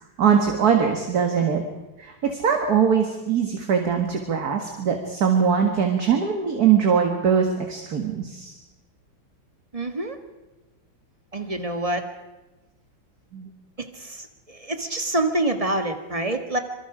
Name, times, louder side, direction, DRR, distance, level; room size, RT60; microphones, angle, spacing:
voice 1, 0.2-1.6 2.0-8.5 13.3-13.5, right 7 dB, 50° right, 4 dB, 2.2 m, -21 dB
voice 2, 9.7-10.1 11.3-12.0 13.8-16.6, right 1 dB, 20° right, 6 dB, 1.6 m, -26 dB
26.0 x 23.5 x 5.1 m, 1.1 s
omnidirectional pair, 2.2 m